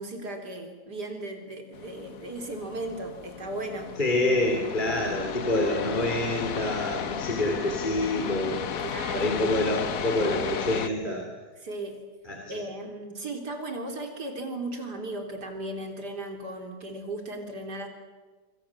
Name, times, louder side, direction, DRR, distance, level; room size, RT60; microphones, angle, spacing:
voice 1, 0.0-4.0 8.8-9.5 11.6-12.0 12.5-17.9, right 2 dB, 75° right, 4 dB, 4.3 m, -36 dB
sound 1, 1.7-10.9, left 7 dB, 60° left, 1.4 m, -34 dB
voice 2, 4.0-8.6 9.1-11.3 12.3-12.6, left 1 dB, 30° left, 2 dB, 3.4 m, -27 dB
25.5 x 25.0 x 7.4 m, 1.4 s
omnidirectional pair, 1.8 m